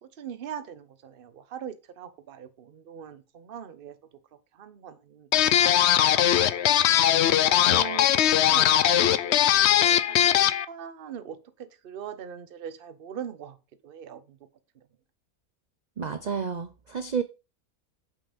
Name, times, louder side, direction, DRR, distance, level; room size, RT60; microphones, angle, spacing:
voice 1, 0.0-4.0 4.5-5.8 6.5-6.8 7.4-13.6 13.8-14.4 14.7-14.9, right 8 dB, 45° right, 0.9 m, -41 dB
sound 1, 5.3-10.6, left 11 dB, 65° left, 0.7 m, -20 dB
voice 2, 16.0-17.2, right 6 dB, 90° right, 0.3 m, -30 dB
6.9 x 5.7 x 5.1 m
omnidirectional pair, 1.5 m